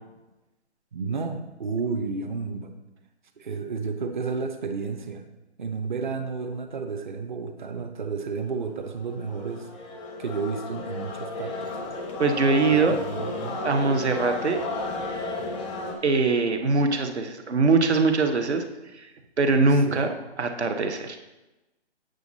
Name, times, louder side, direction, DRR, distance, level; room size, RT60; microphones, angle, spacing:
voice 1, 0.9-2.7 3.4-5.2 5.6-9.7 10.2-11.7 12.7-13.6 19.9-20.1, right 4 dB, 45° right, 6 dB, 0.9 m, -31 dB
sound 1, 8.7-15.9, left 2 dB, 10° left, 0.5 m, -33 dB
voice 2, 12.2-12.9 13.6-14.6 16.0-18.6 18.9-19.1 19.4-20.1 20.4-21.2, right 3 dB, 75° right, 6 dB, 1.2 m, -22 dB
8.1 x 6.3 x 4.0 m, 1.0 s
figure-of-eight pair, 150°, 34 cm